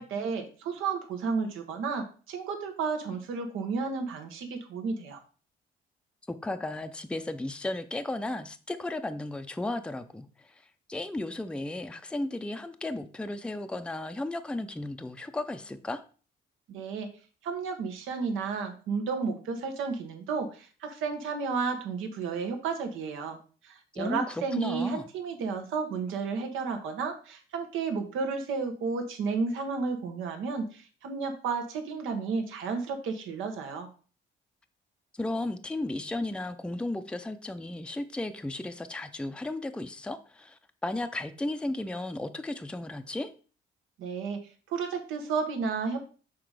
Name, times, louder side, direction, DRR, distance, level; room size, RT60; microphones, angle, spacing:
voice 1, 0.0-5.2 16.7-17.1 17.4-23.4 23.6-33.9 44.0-46.1, right 5 dB, 85° right, 5 dB, 1.2 m, -32 dB
voice 2, 6.3-10.5 10.9-16.0 23.9-25.1 35.1-43.3, left 2 dB, 5° left, 8 dB, 0.5 m, -34 dB
6.0 x 3.8 x 4.8 m, 0.38 s
cardioid pair, 90°, 20 cm